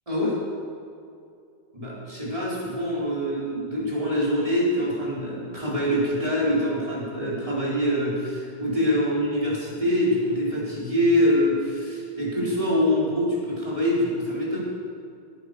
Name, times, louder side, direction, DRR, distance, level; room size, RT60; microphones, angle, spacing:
voice 1, 0.1-0.4 1.7-14.6, equal, 30° right, -8 dB, 4.9 m, -24 dB
17.5 x 10.5 x 6.9 m, 2.5 s
omnidirectional pair, 1.1 m